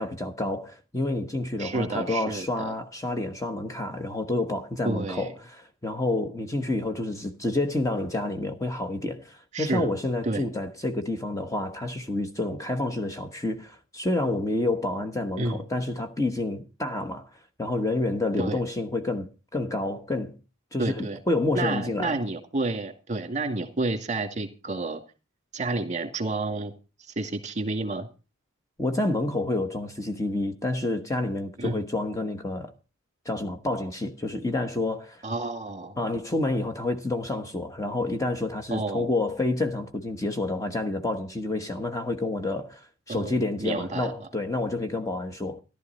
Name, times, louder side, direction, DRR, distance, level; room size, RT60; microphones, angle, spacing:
voice 1, 0.0-17.3 17.6-20.4 20.7-22.2 28.8-32.7 33.2-35.3 36.0-45.6, left 2 dB, 15° left, 1.2 m, -29 dB
voice 2, 1.6-2.7 4.8-5.3 9.5-9.9 10.3-10.4 15.4-15.6 18.4-18.6 20.8-21.2 21.5-25.0 25.5-26.7 27.2-28.1 31.6-31.8 35.2-36.0 38.7-39.1 43.1-43.3 43.6-44.3, right 2 dB, 35° right, 2.2 m, -30 dB
15.0 x 11.5 x 4.1 m
head